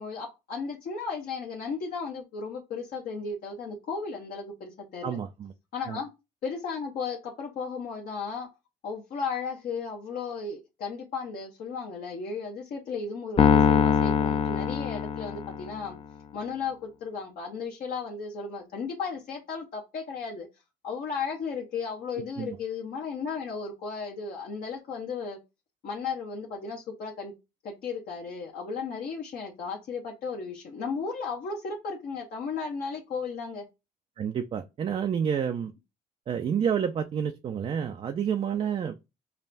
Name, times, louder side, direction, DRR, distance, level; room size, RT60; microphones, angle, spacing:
voice 1, 0.0-5.2 5.7-6.1 6.4-8.5 8.8-16.0 16.3-20.5 20.8-25.4 25.8-27.3 27.6-33.6, left 5 dB, 60° left, 0.9 m, -35 dB
voice 2, 5.0-5.5 5.9-6.0 22.4-22.6 34.2-35.7 36.3-39.0, right 8 dB, 35° right, 0.4 m, -29 dB
Piano, 13.4-15.8, left 7 dB, 35° left, 0.4 m, -23 dB
5.4 x 2.2 x 2.5 m
cardioid pair, 110°, 17 cm